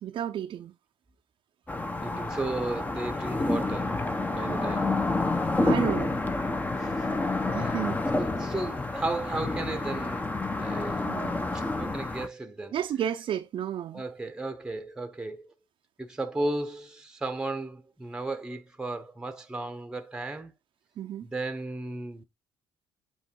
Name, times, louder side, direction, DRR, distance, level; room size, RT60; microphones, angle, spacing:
voice 1, 0.0-0.7 4.5-4.7 5.6-6.2 7.4-8.0 11.1-11.4 12.7-14.0 21.0-21.3, right 10 dB, 55° right, 0.6 m, -32 dB
sound 1, 1.7-12.3, left 2 dB, 15° left, 0.9 m, -29 dB
voice 2, 2.0-4.0 4.3-4.9 6.8-6.9 7.6-7.8 8.2-11.1 11.5-12.7 13.9-15.5 16.0-20.5 21.2-22.2, right 2 dB, 5° right, 0.9 m, -34 dB
8.4 x 3.1 x 4.6 m
cardioid pair, 115°, 10 cm